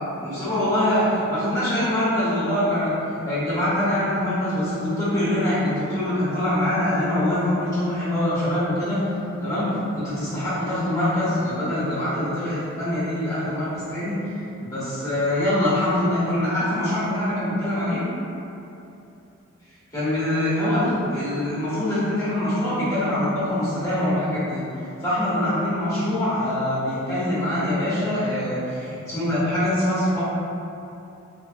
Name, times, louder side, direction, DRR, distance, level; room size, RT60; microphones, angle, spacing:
voice 1, 0.2-3.0 3.2-9.0 9.4-18.0 19.9-24.6 25.0-30.2, left 1 dB, 15° left, -11 dB, 1.2 m, -24 dB
3.7 x 2.5 x 2.4 m, 2.8 s
head